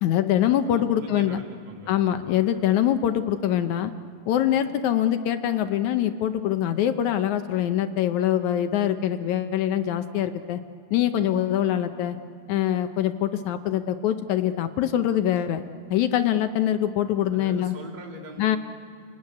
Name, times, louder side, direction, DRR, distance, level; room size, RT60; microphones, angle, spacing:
voice 1, 0.0-1.4 1.9-3.9 4.3-10.6 10.9-12.2 12.5-15.6 15.9-17.7 18.4-18.6, left 11 dB, 75° left, 9 dB, 2.0 m, -24 dB
voice 2, 0.7-2.4 17.3-18.6, right 1 dB, 20° right, 1 dB, 1.2 m, -42 dB
29.0 x 18.0 x 9.7 m, 2.4 s
omnidirectional pair, 3.7 m